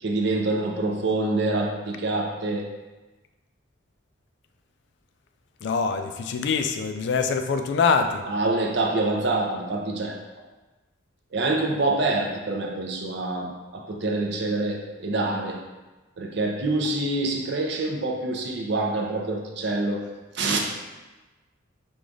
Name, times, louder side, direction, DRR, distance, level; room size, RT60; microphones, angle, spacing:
voice 1, 0.0-2.6 8.3-10.1 11.3-15.6 16.2-20.1 20.3-20.6, right 2 dB, 55° right, 1 dB, 0.6 m, -26 dB
voice 2, 5.6-8.2, left 5 dB, 55° left, 7 dB, 0.3 m, -24 dB
4.9 x 2.4 x 3.8 m, 1.2 s
head